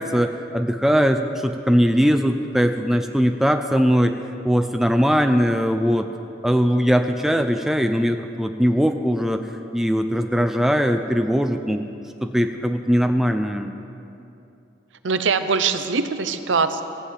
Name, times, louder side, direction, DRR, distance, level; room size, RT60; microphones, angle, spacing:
voice 1, 0.0-4.1 4.4-6.1 6.4-9.4 9.7-11.9 12.2-13.7, equal, ahead, 6 dB, 0.4 m, -20 dB
voice 2, 15.0-16.8, right 5 dB, 75° right, 10 dB, 0.7 m, -22 dB
14.5 x 7.7 x 8.3 m, 2.7 s
head